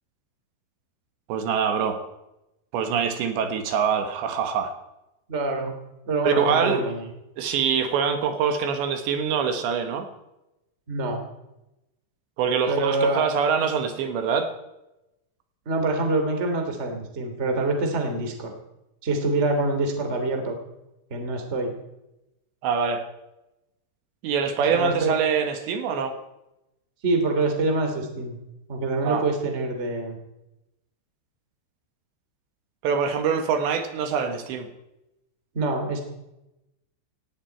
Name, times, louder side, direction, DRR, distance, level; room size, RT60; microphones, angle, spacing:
voice 1, 1.3-2.0 2.7-4.7 6.2-6.9 7.4-10.1 12.4-14.5 22.6-23.0 24.2-26.2 29.1-29.2 32.8-34.7, right 6 dB, 70° right, 6 dB, 3.6 m, -24 dB
voice 2, 5.3-5.7 6.1-7.0 10.9-11.2 12.7-13.2 15.7-18.5 19.0-20.6 21.1-21.7 24.6-25.2 27.0-28.4 28.7-30.2 35.5-36.0, right 2 dB, 20° right, 4 dB, 2.0 m, -25 dB
18.0 x 17.0 x 4.6 m, 0.90 s
omnidirectional pair, 5.5 m